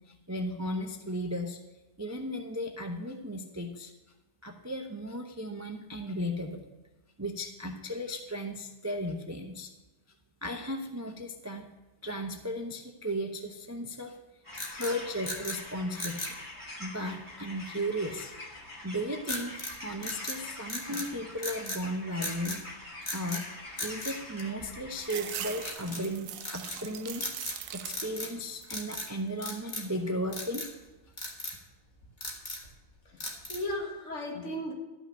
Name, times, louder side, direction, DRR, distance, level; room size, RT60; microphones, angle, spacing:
voice 1, 0.1-1.6 2.0-3.9 4.4-6.6 7.2-9.7 10.4-11.7 12.0-14.2 14.7-16.4 16.8-18.3 18.8-22.6 23.1-27.2 27.7-30.7, equal, 20° right, 4 dB, 0.5 m, -35 dB
sound 1, 14.4-25.7, left 1 dB, 10° left, 2.8 m, -45 dB
sound 2, 14.5-15.6 15.9-16.4 19.3-19.8 20.0-21.1 21.4-21.8 22.2-22.6 23.0-23.5 23.8-25.0 25.6-26.0 26.4-26.8 27.2-27.6 27.9-28.4 28.6-29.1 29.4-30.0 30.3-30.7 31.2-31.6 32.0-32.7 33.2-33.7, left 2 dB, 30° left, 1.6 m, -38 dB
sound 3, 25.0-28.3 28.6-29.2 29.7-30.4, right 10 dB, 70° right, 0.9 m, -42 dB
voice 2, 33.1-34.7, left 1 dB, 50° left, 0 dB, 2.3 m, -36 dB
12.5 x 5.9 x 6.5 m, 1.1 s
omnidirectional pair, 1.6 m